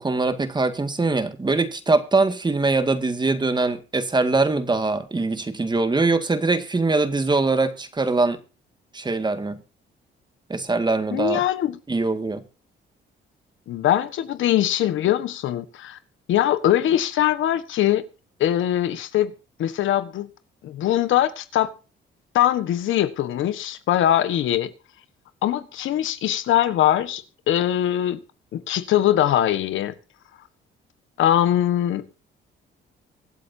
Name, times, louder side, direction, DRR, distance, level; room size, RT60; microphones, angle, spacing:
voice 1, 0.0-8.4 8.9-9.6 10.5-11.4 11.9-12.4, right 3 dB, 20° right, 2.0 m, -22 dB
voice 2, 11.1-11.8 13.7-16.0 16.3-18.0 18.4-19.3 19.6-20.3 20.6-21.7 22.3-24.7 25.4-28.2 28.5-29.9 31.2-32.0, left 12 dB, 80° left, 1.4 m, -22 dB
24.0 x 8.3 x 2.8 m
cardioid pair, 90°, 20 cm